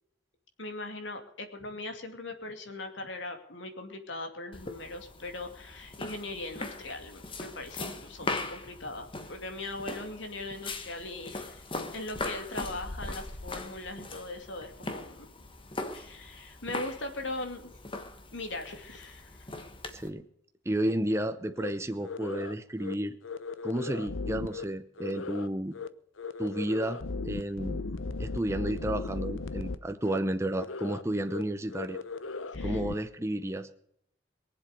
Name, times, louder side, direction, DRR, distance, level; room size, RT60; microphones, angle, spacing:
voice 1, 0.6-11.6 11.9-15.3 15.9-17.7 18.3-19.5 32.5-32.8, left 2 dB, 70° left, 5 dB, 2.5 m, -40 dB
sound 1, 4.5-20.1, left 2 dB, 25° left, 1.3 m, -40 dB
voice 2, 19.9-20.3 20.7-23.2 23.6-25.7 26.4-27.8 28.2-32.0 32.6-33.7, right 1 dB, 15° right, 8 dB, 0.8 m, -32 dB
sound 2, 21.6-21.7 22.0-22.5 22.8-22.9 23.2-24.6 25.0-25.5 25.7-25.9 26.2-29.8 30.0-30.2 30.5-31.0 31.3-31.4 31.7-32.9, left 3 dB, 90° left, 0.9 m, -36 dB
22.5 x 7.7 x 6.6 m, 0.71 s
head